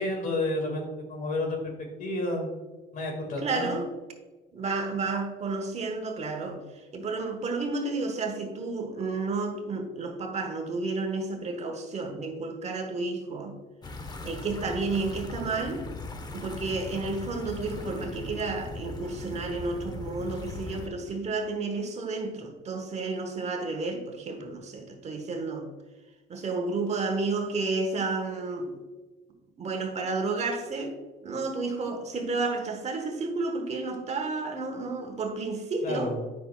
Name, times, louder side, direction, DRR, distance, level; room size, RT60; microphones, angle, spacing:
voice 1, 0.0-1.7 2.0-2.5 2.9-3.7 35.8-36.1, left 2 dB, 55° left, 2 dB, 2.0 m, -30 dB
voice 2, 3.4-3.9 4.5-13.6 14.2-15.9 16.3-25.7 26.3-28.8 29.6-36.1, right 3 dB, 40° right, 4 dB, 1.1 m, -31 dB
sound 1, 13.8-20.9, left 3 dB, 25° left, 0.7 m, -39 dB
9.1 x 5.7 x 2.4 m, 1.2 s
cardioid pair, 110°, 17 cm